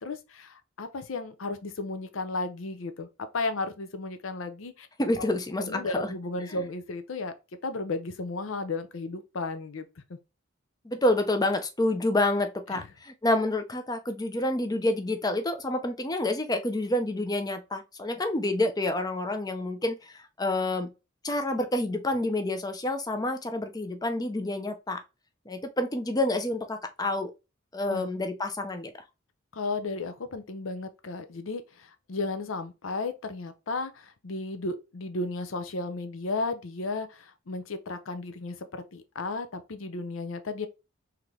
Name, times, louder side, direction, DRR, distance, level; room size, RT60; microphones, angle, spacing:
voice 1, 0.0-4.9 5.2-5.3 5.6-7.3 7.6-10.2 12.7-12.9 27.9-28.1 29.5-40.7, left 3 dB, 75° left, 0.6 m, -34 dB
voice 2, 5.0-6.1 10.8-20.0 20.4-20.9 21.2-25.0 25.5-27.3 27.7-28.9, left 1 dB, 20° left, 0.5 m, -28 dB
3.8 x 2.9 x 3.1 m
head